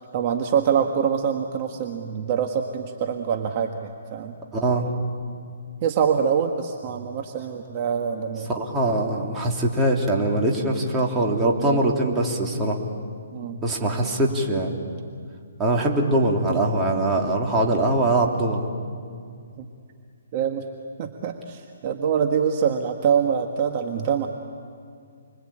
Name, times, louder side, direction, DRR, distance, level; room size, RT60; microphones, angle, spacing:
voice 1, 0.0-4.3 5.8-8.5 11.6-11.8 13.3-14.0 19.6-19.7 20.3-20.6 21.0-24.3, right 7 dB, 35° right, 4 dB, 1.5 m, -25 dB
voice 2, 4.5-4.8 8.5-12.8 13.6-14.7 15.6-18.7, right 1 dB, 15° right, -2 dB, 3.1 m, -22 dB
29.0 x 22.5 x 8.8 m, 2.2 s
hypercardioid pair, 150°, 0 cm